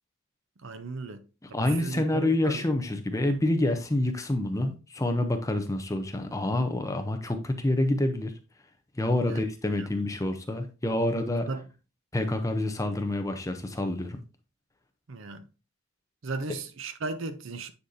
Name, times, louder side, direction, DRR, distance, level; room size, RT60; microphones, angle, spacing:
voice 1, 0.6-1.2 1.5-2.6 9.2-9.5 9.8-9.9 11.5-11.6 15.1-15.5 16.2-17.7, right 3 dB, 65° right, 0.6 m, -36 dB
voice 2, 1.5-8.3 9.0-11.5 12.1-14.2, left 1 dB, 15° left, 0.6 m, -27 dB
9.4 x 4.1 x 2.6 m
head